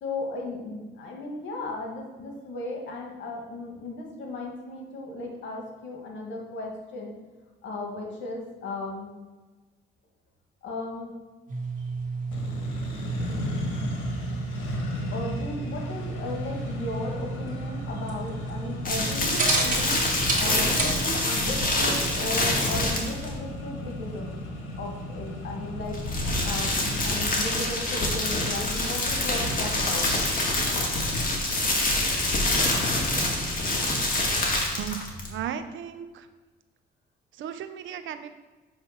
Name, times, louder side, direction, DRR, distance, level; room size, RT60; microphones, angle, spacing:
voice 1, 0.0-7.1 7.6-9.2 10.6-11.2 15.1-24.3 24.8-26.0 26.4-30.2, left 2 dB, 70° left, 0 dB, 1.7 m, -35 dB
sound 1, 11.5-22.9, right 3 dB, 40° right, 1.7 m, -33 dB
Accelerating revving vroom, 12.3-27.3, left 1 dB, 85° left, 1.2 m, -36 dB
sound 2, 18.8-23.3 25.8-35.4, left 2 dB, 45° left, 1.7 m, -26 dB
voice 2, 34.8-36.3 37.4-38.3, right 9 dB, 75° right, 10 dB, 0.6 m, -35 dB
7.0 x 3.4 x 5.6 m, 1.3 s
cardioid pair, 90°, 20 cm